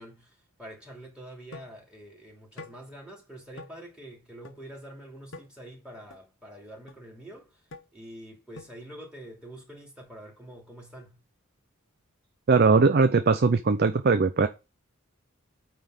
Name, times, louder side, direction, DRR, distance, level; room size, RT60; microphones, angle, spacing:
voice 1, 0.0-7.7 7.9-11.2, right 1 dB, 5° right, 2.9 m, -46 dB
sound 1, 1.5-1.8 2.6-2.8 3.6-3.7 4.4-4.6 5.3-5.5 6.1-6.2 6.9-7.0 7.7-7.8 8.6-8.8, left 2 dB, 55° left, 1.0 m, -44 dB
voice 2, 12.5-14.5, right 4 dB, 45° right, 0.5 m, -20 dB
9.1 x 3.5 x 6.5 m
head